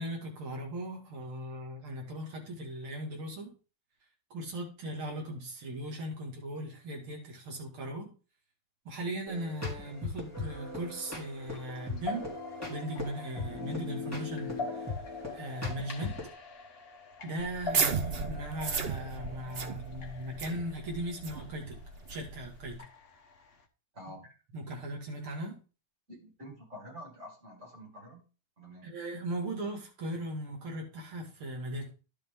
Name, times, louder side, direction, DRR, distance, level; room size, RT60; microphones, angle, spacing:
voice 1, 0.0-3.5 4.3-8.1 8.8-12.3 12.7-14.9 15.3-16.2 17.2-21.8 22.1-22.9 24.5-25.6 28.8-31.9, right 1 dB, 80° right, 0 dB, 3.2 m, -38 dB
sound 1, 9.3-16.3, left 3 dB, 5° right, 3.0 m, -39 dB
sound 2, 10.3-23.6, left 3 dB, 35° left, 1.0 m, -45 dB
sound 3, 17.4-22.8, right 5 dB, 55° right, 0.6 m, -35 dB
voice 2, 23.9-24.3 26.1-28.2 28.6-28.9, equal, 30° right, -4 dB, 5.4 m, -48 dB
11.5 x 6.7 x 3.8 m, 0.34 s
omnidirectional pair, 2.3 m